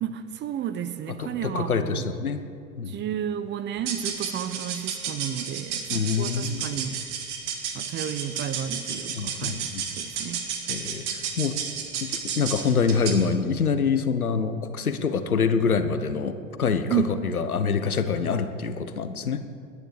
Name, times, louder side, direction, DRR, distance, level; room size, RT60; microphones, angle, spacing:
voice 1, 0.0-2.0 2.9-7.0 7.7-10.5 16.9-17.2, right 9 dB, 25° right, 12 dB, 0.9 m, -32 dB
voice 2, 1.2-2.4 2.8-3.0 5.9-6.7 9.1-9.8 10.7-11.6 12.0-19.4, left 5 dB, 80° left, 10 dB, 1.3 m, -26 dB
sound 1, 3.8-13.3, right 7 dB, 55° right, 2.3 m, -32 dB
20.5 x 10.5 x 6.6 m, 2.4 s
figure-of-eight pair, 90°, 43 cm